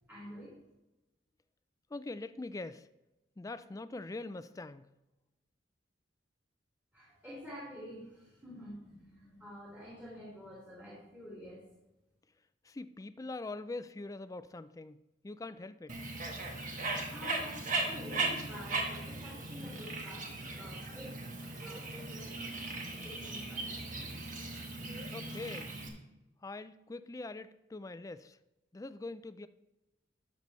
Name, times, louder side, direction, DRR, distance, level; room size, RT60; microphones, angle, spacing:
voice 1, 0.1-0.5 6.9-11.6 17.1-21.2 21.6-23.7, equal, 10° right, 2.1 m, -48 dB
voice 2, 1.9-2.8 3.4-4.9 12.7-15.0 15.2-15.9 25.1-25.7 26.4-28.4 28.7-29.5, left 2 dB, 20° left, 0.3 m, -43 dB
Bird, 15.9-25.9, right 3 dB, 45° right, 1.4 m, -38 dB
12.0 x 6.7 x 3.2 m
head